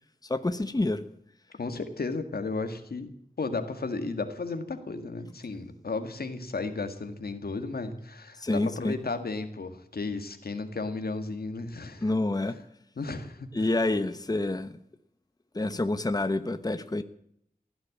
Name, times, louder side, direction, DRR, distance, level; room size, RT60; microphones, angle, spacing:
voice 1, 0.2-1.0 8.4-9.0 12.0-12.5 13.5-14.7 15.5-17.0, left 2 dB, 25° left, 11 dB, 1.0 m, -27 dB
voice 2, 1.6-12.1 13.0-13.5, left 3 dB, 90° left, 8 dB, 1.9 m, -34 dB
16.0 x 10.5 x 8.4 m, 0.71 s
wide cardioid pair, 75°, 15 cm